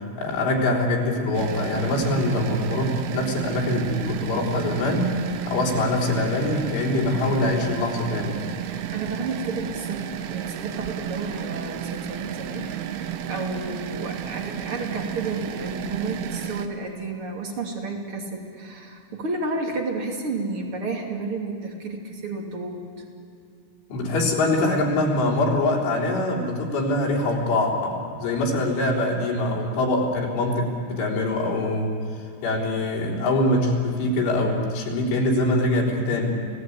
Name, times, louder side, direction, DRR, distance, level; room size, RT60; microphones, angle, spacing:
voice 1, 0.2-8.5 23.9-36.4, left 1 dB, 85° left, -2 dB, 6.3 m, -24 dB
sound 1, 1.3-16.7, right 9 dB, 85° right, 3.5 m, -32 dB
voice 2, 8.6-23.0, right 3 dB, 35° right, 1 dB, 2.9 m, -32 dB
29.5 x 18.0 x 8.6 m, 2.5 s
omnidirectional pair, 5.4 m